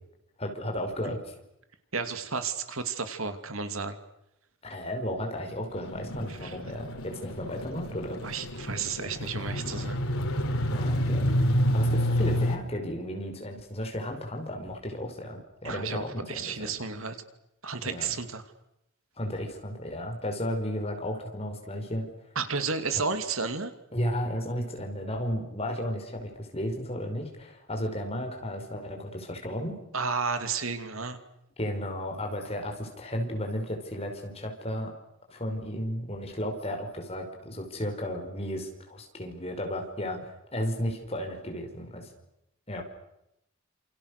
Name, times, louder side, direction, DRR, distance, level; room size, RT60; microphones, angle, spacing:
voice 1, 0.4-1.3 4.6-8.2 10.7-16.7 17.8-18.1 19.2-22.1 23.9-29.8 31.6-34.9 35.3-42.1 42.7-42.8, equal, 30° left, 3 dB, 5.4 m, -34 dB
voice 2, 1.9-4.0 6.4-6.6 8.2-10.0 15.6-17.2 17.6-18.4 22.4-23.7 29.9-31.2, right 5 dB, 80° right, 9 dB, 2.7 m, -32 dB
sound 1, 5.7-12.6, equal, 90° left, 4.1 m, -28 dB
28.5 x 28.0 x 6.7 m, 0.84 s
head